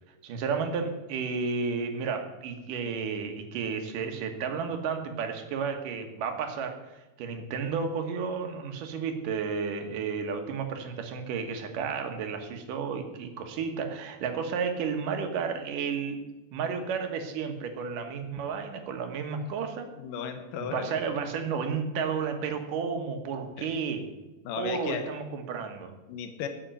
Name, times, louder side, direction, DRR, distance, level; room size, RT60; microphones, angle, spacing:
voice 1, 0.2-6.8 7.2-16.2 16.5-19.9 20.6-24.1 24.6-25.9, right 5 dB, 75° right, 5 dB, 3.0 m, -32 dB
voice 2, 20.0-21.2 23.6-23.7 24.4-25.0 26.1-26.5, left 7 dB, 80° left, 7 dB, 2.7 m, -35 dB
9.0 x 8.2 x 9.2 m, 1.1 s
omnidirectional pair, 3.8 m